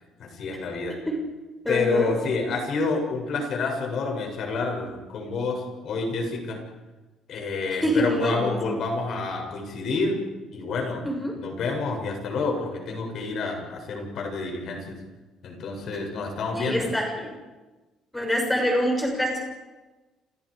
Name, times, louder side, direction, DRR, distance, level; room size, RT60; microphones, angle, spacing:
voice 1, 0.2-1.0 1.7-6.6 7.3-10.2 10.5-11.1 11.4-15.0 15.4-16.9, left 3 dB, 45° left, 2 dB, 7.5 m, -28 dB
voice 2, 1.6-2.1 2.5-2.6 7.8-8.8 11.0-11.3 16.5-17.3 18.1-19.4, equal, 5° left, 1 dB, 6.7 m, -26 dB
30.0 x 30.0 x 5.2 m, 1.2 s
cardioid pair, 175°, 0 cm